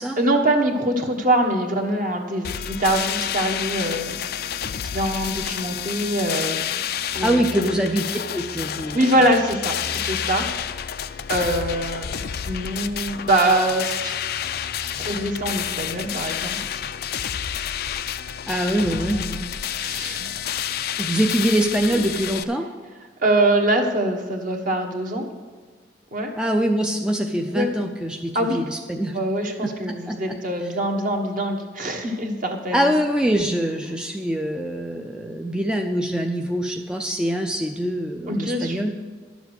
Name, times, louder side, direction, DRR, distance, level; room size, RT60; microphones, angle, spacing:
voice 1, 0.0-4.1 4.6-6.6 7.1-7.7 8.9-10.5 11.3-14.2 15.0-16.6 19.1-19.2 19.8-20.3 21.9-22.0 23.2-25.3 26.1-26.3 27.5-27.7 28.3-28.6 29.1-32.9 38.3-39.0, right 1 dB, 45° right, 3 dB, 1.3 m, -23 dB
sound 1, 2.4-22.4, left 9 dB, 55° left, 0.4 m, -29 dB
voice 2, 7.2-8.1 8.3-9.1 18.5-19.5 21.0-22.7 26.4-29.2 29.6-30.4 32.7-39.0, right 1 dB, 5° right, 3 dB, 0.4 m, -24 dB
11.5 x 7.1 x 6.5 m, 1.4 s
head